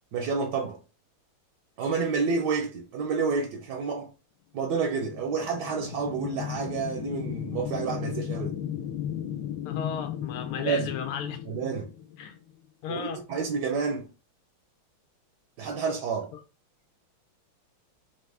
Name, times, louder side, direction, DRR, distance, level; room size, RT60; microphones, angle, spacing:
voice 1, 0.1-0.8 1.8-4.1 4.5-8.5 10.6-10.9 11.5-11.9 12.9-14.1 15.6-16.3, right 5 dB, 70° right, 1.1 m, -29 dB
sound 1, 5.0-12.5, left 10 dB, 70° left, 1.1 m, -35 dB
voice 2, 9.6-11.4 12.2-12.4 12.8-13.2, left 7 dB, 90° left, 1.6 m, -34 dB
4.4 x 2.8 x 3.2 m
omnidirectional pair, 2.3 m